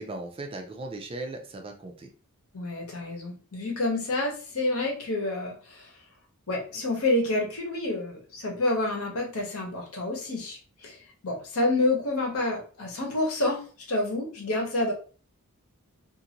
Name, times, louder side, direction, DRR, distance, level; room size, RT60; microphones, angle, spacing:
voice 1, 0.0-2.1, right 2 dB, 25° right, 4 dB, 0.4 m, -37 dB
voice 2, 2.5-5.9 6.5-11.0 11.2-13.6 13.9-14.9, left 2 dB, 70° left, 0 dB, 1.0 m, -28 dB
2.6 x 2.5 x 2.8 m, 0.38 s
head